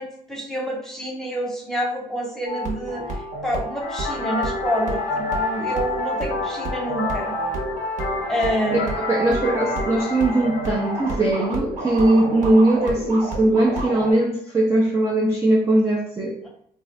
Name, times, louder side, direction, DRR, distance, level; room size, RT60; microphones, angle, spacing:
voice 1, 0.0-7.3 8.3-8.9, equal, 5° left, -3 dB, 1.0 m, -27 dB
sound 1, 2.4-14.1, right 1 dB, 50° right, 1.0 m, -30 dB
sound 2, 3.8-11.3, left 4 dB, 85° left, 0.7 m, -30 dB
voice 2, 9.0-16.4, right 1 dB, 15° right, -5 dB, 0.5 m, -20 dB
2.6 x 2.4 x 3.2 m, 0.68 s
cardioid pair, 110°, 17 cm